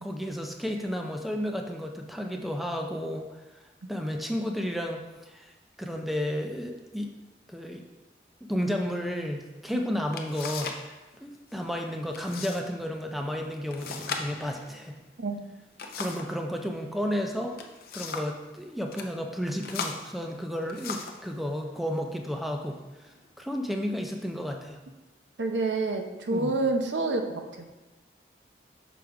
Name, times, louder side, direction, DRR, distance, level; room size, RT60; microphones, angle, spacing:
voice 1, 0.0-3.4 3.9-5.5 5.8-7.1 7.5-7.8 8.4-14.9 16.0-17.6 17.9-22.8 23.0-24.8 26.3-26.5, equal, ahead, 3 dB, 0.4 m, -32 dB
sound 1, 9.6-9.7 10.1-10.9 11.1-11.6 12.1-12.6 12.9-13.0 13.7-16.4 17.3-18.4 18.8-19.1 19.6-21.3 22.0-22.2 22.7-23.2, left 4 dB, 55° left, 0.6 m, -38 dB
voice 2, 25.4-27.6, right 3 dB, 90° right, 5 dB, 0.6 m, -28 dB
6.2 x 4.9 x 3.4 m, 1.1 s
head